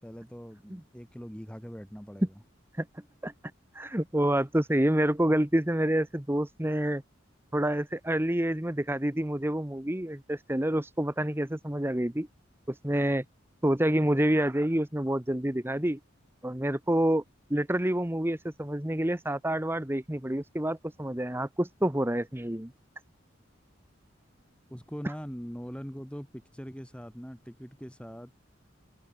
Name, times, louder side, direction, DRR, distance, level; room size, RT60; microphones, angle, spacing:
voice 1, 0.0-2.4 24.7-28.3, equal, 5° left, 4.0 m, -42 dB
voice 2, 3.7-7.0 7.5-12.3 12.7-13.2 13.6-16.0 16.4-17.2 17.5-22.7, right 1 dB, 10° right, 1.0 m, -28 dB
head